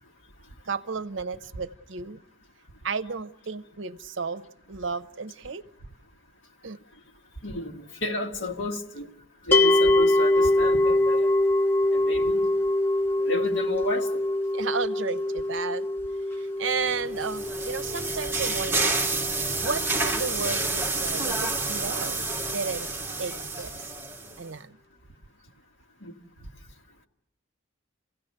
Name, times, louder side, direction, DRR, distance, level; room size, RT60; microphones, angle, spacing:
voice 1, 0.6-2.2 2.8-5.6 6.6-6.8 14.5-15.9 16.4-18.9 19.6-22.2 22.5-22.9 23.2-23.8 24.4-24.8, right 5 dB, 70° right, 0.7 m, -33 dB
voice 2, 7.4-9.1 9.5-11.3 11.9-12.4 13.2-14.2 26.0-26.1, left 1 dB, 65° left, 1.7 m, -32 dB
sound 1, 9.5-20.7, left 1 dB, 10° left, 0.8 m, -25 dB
sound 2, 16.8-24.4, right 3 dB, 10° right, 1.3 m, -29 dB
28.0 x 16.5 x 6.7 m
head